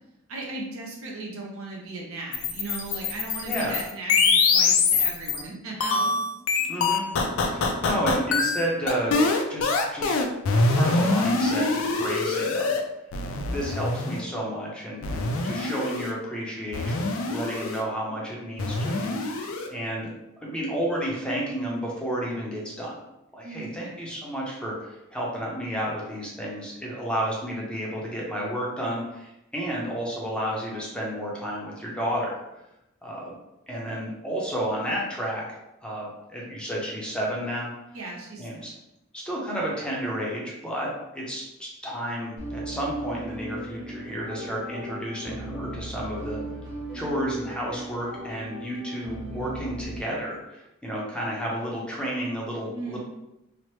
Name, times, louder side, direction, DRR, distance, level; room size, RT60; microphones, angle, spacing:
voice 1, 0.3-6.2 6.5-6.6 23.4-24.1 37.9-38.8 52.6-53.0, right 2 dB, 75° right, -2 dB, 0.8 m, -37 dB
sound 1, 2.3-5.4 5.8-12.8 13.1-14.2 15.0-16.1 16.7-17.8 18.6-19.7, left 3 dB, 65° left, 0.4 m, -24 dB
voice 2, 3.4-3.8 6.7-7.0 7.5-9.2 9.5-10.1 10.5-12.8 13.5-20.1 20.4-23.0 23.3-32.4 33.0-33.3 33.7-35.4 35.8-37.7 38.4-38.6 39.1-46.4 46.9-53.0, equal, 5° left, -4 dB, 0.6 m, -31 dB
sound 2, 42.4-50.0, right 1 dB, 30° right, 1.3 m, -37 dB
3.0 x 2.0 x 3.0 m, 0.89 s
head